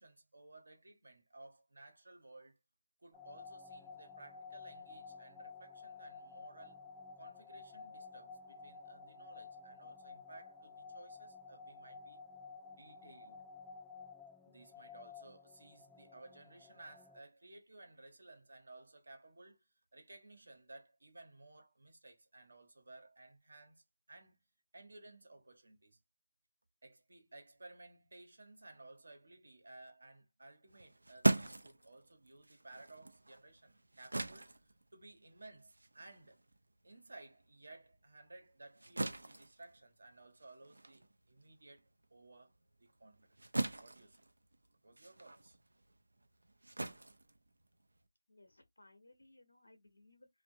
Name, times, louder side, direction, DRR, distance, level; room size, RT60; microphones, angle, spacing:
voice 1, 0.0-2.6 3.0-6.8 7.2-12.2 12.7-13.5 14.4-23.8 24.1-24.4 24.7-26.0 26.8-36.4 36.8-42.5 42.8-43.4 43.8-44.3 44.8-45.6, right 2 dB, 70° right, 1.0 m, -57 dB
sound 1, 3.1-17.2, left 4 dB, 5° left, 0.4 m, -53 dB
sound 2, 30.7-37.5 37.9-48.1, right 2 dB, 85° right, 0.5 m, -41 dB
voice 2, 48.3-50.3, left 2 dB, 85° left, 0.9 m, -63 dB
2.7 x 2.4 x 2.6 m
figure-of-eight pair, 170°, 0 cm